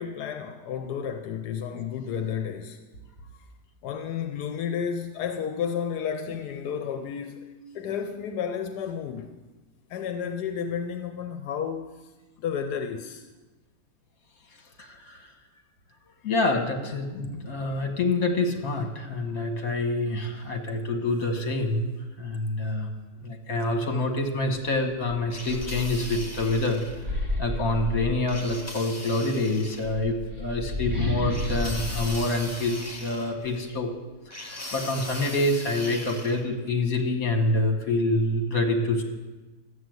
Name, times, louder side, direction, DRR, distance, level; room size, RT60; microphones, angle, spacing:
voice 1, 0.0-2.8 3.8-9.4 9.9-12.0 12.4-13.2, left 7 dB, 85° left, 1.3 m, -32 dB
voice 2, 14.8-15.3 16.2-21.9 22.2-22.9 23.2-33.9 34.3-39.0, left 2 dB, 60° left, 2.1 m, -27 dB
sound 1, 25.3-27.0 28.3-29.9 31.3-33.6 34.3-36.4, left 1 dB, 10° left, 1.3 m, -40 dB
sound 2, 25.5-28.7 29.6-33.3, left 2 dB, 20° right, 1.9 m, -32 dB
12.5 x 8.2 x 7.9 m
omnidirectional pair, 1.7 m